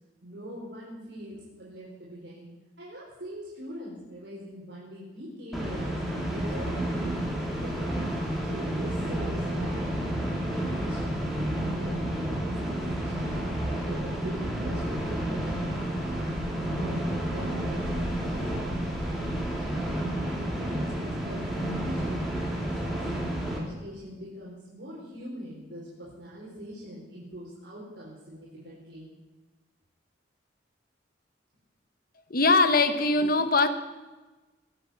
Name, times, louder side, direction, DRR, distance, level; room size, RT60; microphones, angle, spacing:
voice 1, 0.2-2.5 2.8-6.0 6.3-11.2 11.6-13.5 13.8-16.3 16.6-20.2 20.6-29.2, equal, 65° right, -7 dB, 4.6 m, -43 dB
sound 1, 5.5-23.6, right 1 dB, ahead, 3.4 m, -30 dB
voice 2, 32.3-33.7, left 3 dB, 55° left, 10 dB, 1.2 m, -21 dB
21.0 x 8.1 x 7.9 m, 1.2 s
head